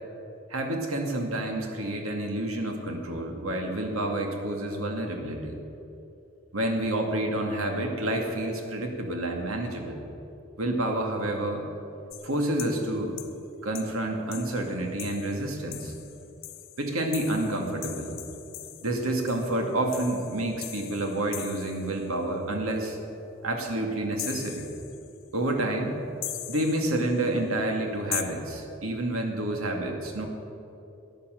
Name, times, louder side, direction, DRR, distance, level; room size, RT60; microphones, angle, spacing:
voice 1, 0.5-5.6 6.5-10.0 10.6-11.6 12.2-13.2 13.6-15.9 16.8-18.2 18.8-23.0 23.4-24.6 25.3-26.0 26.5-30.3, right 1 dB, 90° right, 3 dB, 2.1 m, -29 dB
sound 1, 12.1-12.8 13.2-13.3 13.7-13.9 14.3-22.1 24.2-25.2 26.2-27.3 28.1-28.2, left 14 dB, 70° left, 0.9 m, -40 dB
13.5 x 10.0 x 7.7 m, 2.9 s
head